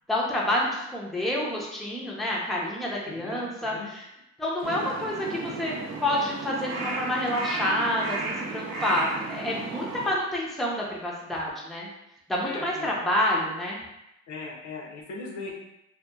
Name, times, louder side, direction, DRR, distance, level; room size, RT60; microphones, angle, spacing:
voice 1, 0.1-4.1 4.4-11.9 12.3-13.8, left 1 dB, ahead, -4 dB, 0.5 m, -28 dB
voice 2, 3.1-3.9 4.7-4.8 12.4-13.0 14.3-15.6, left 3 dB, 70° left, -1 dB, 0.6 m, -38 dB
Crow, 4.6-10.1, right 3 dB, 60° right, 0.6 m, -34 dB
2.8 x 2.2 x 2.2 m, 0.87 s
cardioid pair, 90°, 30 cm